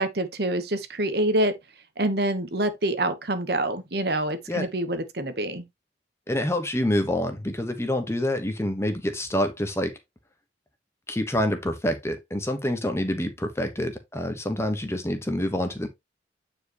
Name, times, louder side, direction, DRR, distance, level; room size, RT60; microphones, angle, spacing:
voice 1, 0.0-1.5 2.0-5.6, right 1 dB, 60° right, 1.2 m, -26 dB
voice 2, 6.3-10.0 11.1-15.9, left 1 dB, 15° left, 1.2 m, -27 dB
9.1 x 4.9 x 3.0 m
head